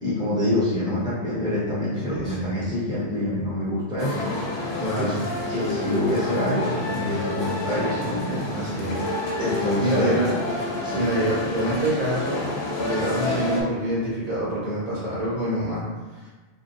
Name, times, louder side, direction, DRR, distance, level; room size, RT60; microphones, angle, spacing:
voice 1, 0.0-4.3 4.9-5.1 5.5-8.5 9.4-10.2 10.8-11.1, left 1 dB, 5° right, -10 dB, 1.2 m, -26 dB
voice 2, 2.0-2.5 4.6-5.3 8.5-9.0 9.8-10.4 10.9-12.4 12.7-15.8 16.1-16.3, right 1 dB, 40° right, -10 dB, 1.7 m, -26 dB
sound 1, 4.0-13.6, left 2 dB, 85° left, 1.0 m, -29 dB
3.5 x 3.4 x 2.7 m, 1.3 s
omnidirectional pair, 1.0 m